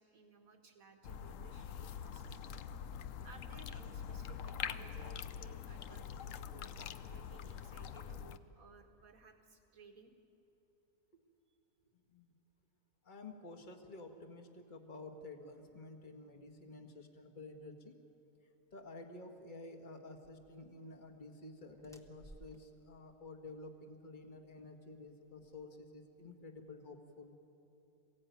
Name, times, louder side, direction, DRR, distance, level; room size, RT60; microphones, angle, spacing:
voice 1, 0.0-2.4 3.2-10.1, right 4 dB, 65° right, 4 dB, 2.2 m, -60 dB
sound 1, 1.0-8.4, left 8 dB, 65° left, 1.0 m, -44 dB
voice 2, 13.0-18.0 18.7-27.3, left 2 dB, 30° left, 4 dB, 1.7 m, -51 dB
sound 2, 20.2-26.3, right 1 dB, ahead, 1.0 m, -63 dB
22.5 x 16.5 x 9.3 m, 2.9 s
omnidirectional pair, 1.6 m